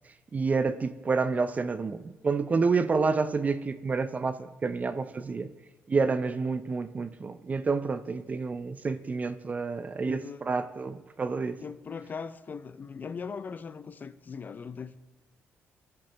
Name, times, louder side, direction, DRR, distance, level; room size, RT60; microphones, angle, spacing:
voice 1, 0.3-5.5 5.9-11.6, right 4 dB, 30° right, 12 dB, 0.4 m, -29 dB
voice 2, 10.0-10.5 11.6-15.0, left 5 dB, 35° left, 13 dB, 0.4 m, -39 dB
14.5 x 6.6 x 3.3 m, 1.2 s
cardioid pair, 100°, 5 cm